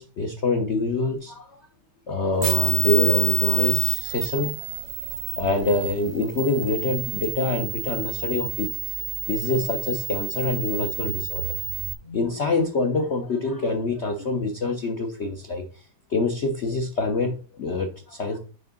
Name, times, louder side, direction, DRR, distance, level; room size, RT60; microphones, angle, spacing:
voice 1, 0.0-1.6 2.1-4.6 5.1-11.5 12.0-15.6 16.1-18.4, left 3 dB, 60° left, 0.7 m, -26 dB
sound 1, 2.4-11.9, right 14 dB, 65° right, 1.1 m, -28 dB
6.5 x 4.8 x 3.7 m
omnidirectional pair, 2.2 m